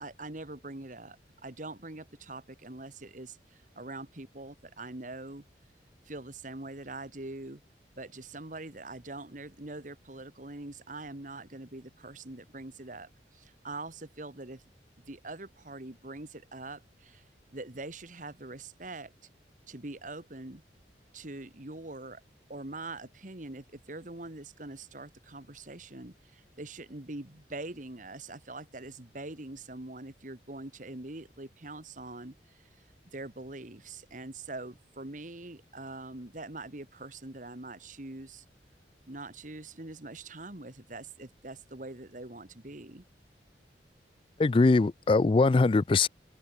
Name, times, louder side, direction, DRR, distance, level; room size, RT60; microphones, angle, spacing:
voice 1, 0.0-5.4 6.1-7.6 8.0-14.6 15.1-17.3 17.5-19.1 19.7-20.6 21.1-22.2 22.5-32.7 33.0-38.4 39.1-43.0, right 2 dB, 45° right, 1.8 m, -43 dB
voice 2, 44.4-46.1, left 3 dB, 30° left, 0.3 m, -22 dB
open air
head